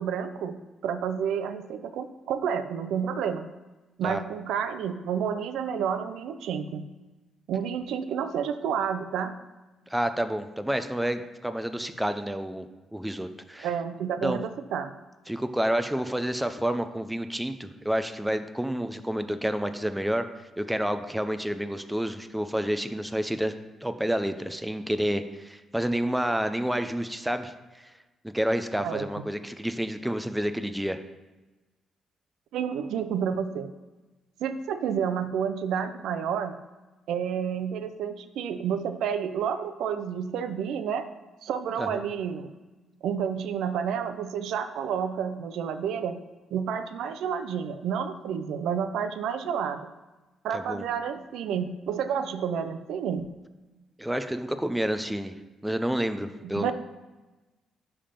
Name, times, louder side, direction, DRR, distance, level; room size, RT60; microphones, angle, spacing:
voice 1, 0.0-3.5 4.0-6.9 7.5-9.4 13.6-14.9 28.8-29.1 32.5-33.7 34.4-36.6 37.1-41.1 41.4-42.5 43.0-46.2 46.5-49.9 50.4-53.3 56.4-56.7, right 7 dB, 90° right, 10 dB, 0.5 m, -30 dB
voice 2, 9.9-13.7 14.2-14.4 15.3-20.3 20.6-23.5 23.8-27.9 28.2-31.0 41.8-41.9 50.5-50.8 54.0-55.3 55.6-56.7, equal, 5° right, 9 dB, 0.4 m, -29 dB
10.0 x 3.5 x 5.7 m, 1.1 s
cardioid pair, 135°, 0 cm